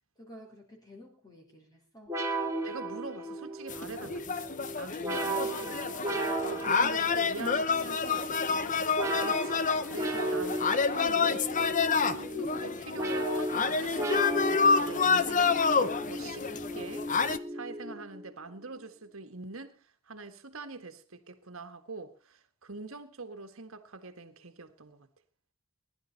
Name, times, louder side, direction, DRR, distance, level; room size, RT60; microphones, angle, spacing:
voice 1, 0.2-2.2, equal, 15° left, 4.2 m, -52 dB
sound 1, 2.1-18.3, right 1 dB, 15° right, 2.7 m, -35 dB
voice 2, 2.6-6.0 6.4-8.3 9.2-17.1 17.5-25.1, right 3 dB, 65° right, 1.7 m, -44 dB
sound 2, 3.7-17.4, left 5 dB, 35° left, 0.8 m, -29 dB
20.5 x 11.5 x 4.1 m
head